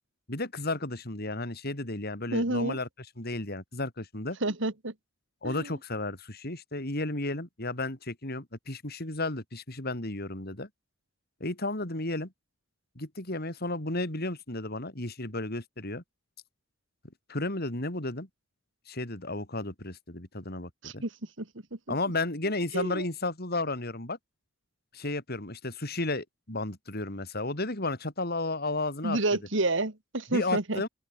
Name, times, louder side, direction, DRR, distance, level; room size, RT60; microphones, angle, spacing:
voice 1, 0.3-2.9 3.2-4.4 5.4-10.7 11.4-12.3 13.0-16.0 17.3-18.3 18.9-21.0 21.9-24.2 24.9-29.2 30.3-30.9, left 2 dB, 55° left, 5.2 m, -33 dB
voice 2, 2.3-2.8 4.4-4.9 5.4-5.7 20.8-21.1 21.4-21.5 21.9-22.0 22.7-23.0 29.0-30.8, right 2 dB, 70° right, 2.5 m, -29 dB
open air
head